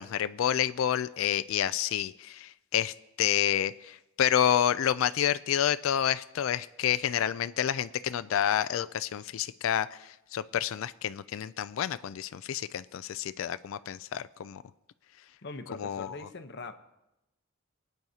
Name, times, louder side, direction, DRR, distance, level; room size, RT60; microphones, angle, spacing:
voice 1, 0.0-14.6 15.8-16.2, left 10 dB, 75° left, 14 dB, 0.3 m, -29 dB
voice 2, 15.4-16.7, left 3 dB, 55° left, 8 dB, 0.9 m, -41 dB
24.0 x 9.1 x 2.8 m, 0.90 s
head